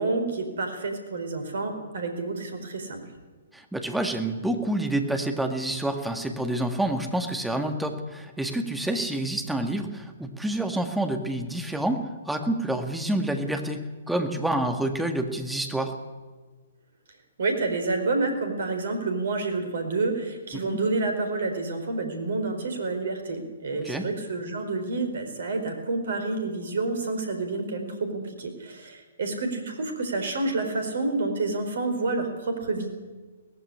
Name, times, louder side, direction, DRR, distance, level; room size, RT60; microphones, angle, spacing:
voice 1, 0.0-3.0 17.4-32.9, right 3 dB, 55° right, 6 dB, 4.5 m, -29 dB
voice 2, 3.5-15.9 20.7-20.8 23.8-24.1, right 1 dB, 5° right, 5 dB, 2.0 m, -28 dB
18.0 x 15.5 x 9.9 m, 1.4 s
figure-of-eight pair, 120°, 0 cm